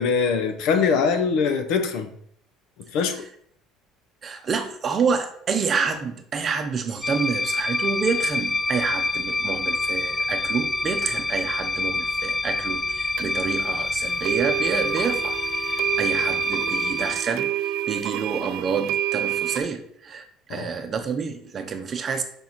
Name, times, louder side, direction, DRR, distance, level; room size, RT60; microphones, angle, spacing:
voice 1, 0.0-2.1 2.9-3.2 20.5-20.7, left 5 dB, 65° left, 8 dB, 0.8 m, -22 dB
voice 2, 4.2-15.4 15.7-17.5 17.9-22.2, right 5 dB, 30° right, 7 dB, 0.7 m, -28 dB
sound 1, 7.0-17.1, left 3 dB, 10° left, 0.3 m, -27 dB
sound 2, 13.2-13.3 14.2-19.6, right 11 dB, 65° right, 0.4 m, -27 dB
5.4 x 4.6 x 5.5 m, 0.64 s
cardioid pair, 165°, 0 cm